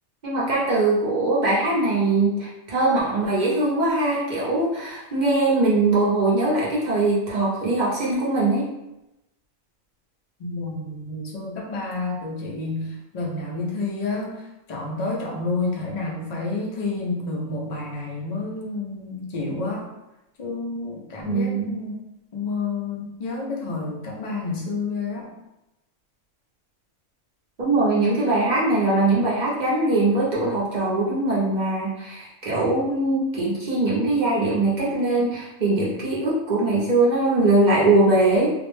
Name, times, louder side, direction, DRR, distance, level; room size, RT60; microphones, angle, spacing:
voice 1, 0.2-8.7 21.2-21.8 27.6-38.5, right 2 dB, 50° right, -6 dB, 0.5 m, -21 dB
voice 2, 10.4-14.4 14.7-19.9 20.4-21.9 22.3-25.3, left 3 dB, 65° left, -3 dB, 0.4 m, -29 dB
2.4 x 2.0 x 3.1 m, 0.94 s
omnidirectional pair, 1.4 m